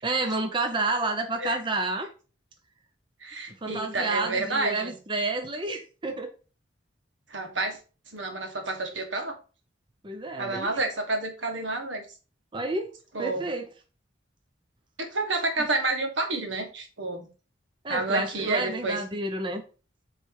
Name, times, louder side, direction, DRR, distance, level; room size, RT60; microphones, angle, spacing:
voice 1, 0.0-2.1 3.6-6.3 10.0-10.7 12.5-12.9 13.2-13.7 17.8-19.6, right 2 dB, 25° right, 0.6 m, -30 dB
voice 2, 3.2-4.9 7.3-7.8 8.1-9.4 10.4-12.0 13.1-13.4 15.0-17.3 17.9-19.0, right 2 dB, 80° right, 1.5 m, -29 dB
8.3 x 3.2 x 4.6 m
head